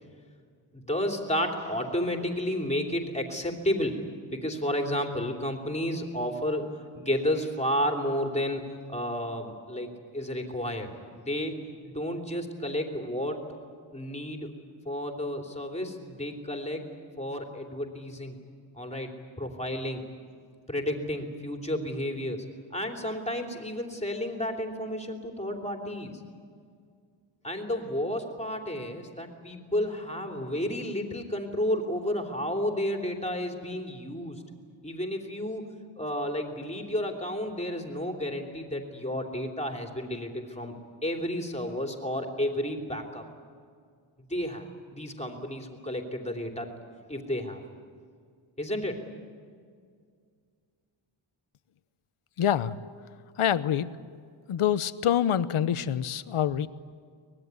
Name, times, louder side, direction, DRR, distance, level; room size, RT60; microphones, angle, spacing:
voice 1, 0.7-4.0 4.3-11.6 11.8-13.4 13.9-14.5 14.8-16.8 17.2-18.4 18.7-19.1 19.4-20.0 20.7-22.4 22.7-26.1 27.4-34.4 34.8-35.6 36.0-40.7 41.0-43.2 44.3-44.7 44.9-46.7 47.1-47.6 48.6-49.0, equal, 15° left, 2 dB, 3.1 m, -31 dB
voice 2, 52.4-52.7 53.4-53.9 54.5-56.7, left 10 dB, 85° left, 14 dB, 0.9 m, -26 dB
24.5 x 20.0 x 9.6 m, 2.1 s
wide cardioid pair, 115°, 50 cm